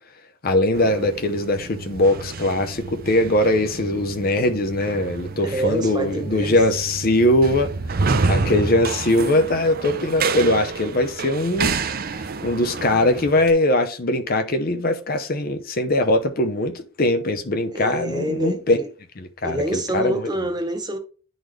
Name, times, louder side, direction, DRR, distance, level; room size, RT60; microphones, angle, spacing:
voice 1, 0.4-7.7 8.3-11.8 12.4-18.8 19.2-20.3, left 1 dB, 45° left, 0.7 m, -21 dB
sound 1, 0.7-13.5, right 4 dB, 45° right, 0.6 m, -29 dB
voice 2, 5.4-6.5 8.1-8.6 17.7-18.9 19.4-21.0, equal, 20° right, 1.2 m, -27 dB
10.5 x 4.0 x 3.2 m
head